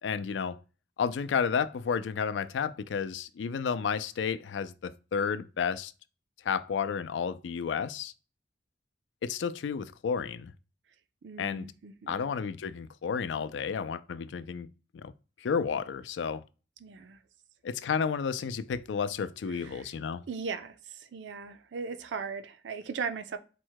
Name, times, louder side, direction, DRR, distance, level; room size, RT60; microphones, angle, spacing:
voice 1, 0.0-0.6 1.0-5.9 6.4-8.1 9.2-10.5 11.4-11.7 12.1-14.7 14.9-15.1 15.4-16.4 17.6-20.2, left 6 dB, 85° left, 0.4 m, -31 dB
voice 2, 11.2-12.3 16.8-17.2 19.5-19.9 20.3-23.4, right 5 dB, 80° right, 0.4 m, -38 dB
4.4 x 2.1 x 4.5 m
head